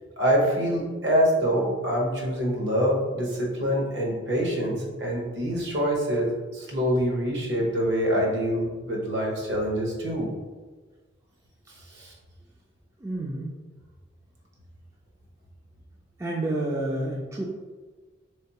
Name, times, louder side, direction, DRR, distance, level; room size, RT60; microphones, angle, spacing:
voice 1, 0.2-10.3 11.9-12.1, equal, 60° right, -2 dB, 1.0 m, -25 dB
voice 2, 13.0-13.6 16.2-17.4, right 1 dB, 15° right, -3 dB, 0.3 m, -30 dB
3.6 x 3.4 x 2.9 m, 1.4 s
head